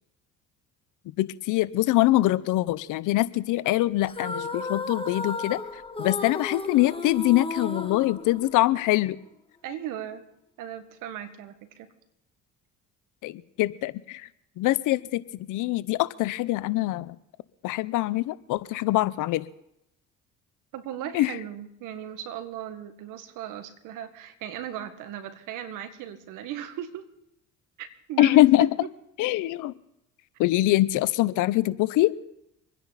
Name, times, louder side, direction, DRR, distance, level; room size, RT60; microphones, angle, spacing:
voice 1, 1.2-5.6 6.0-9.2 13.2-14.3 14.6-15.2 15.5-17.2 17.6-19.5 21.1-21.4 28.2-28.7 29.2-29.7 30.4-32.2, left 16 dB, 75° left, 18 dB, 0.8 m, -23 dB
sound 1, 4.1-8.9, left 3 dB, 15° left, 1.5 m, -34 dB
voice 2, 9.6-10.3 10.6-11.9 20.7-27.1 27.8-28.9, right 10 dB, 80° right, 9 dB, 1.8 m, -37 dB
25.5 x 10.0 x 4.1 m, 0.80 s
supercardioid pair, 75°, 31 cm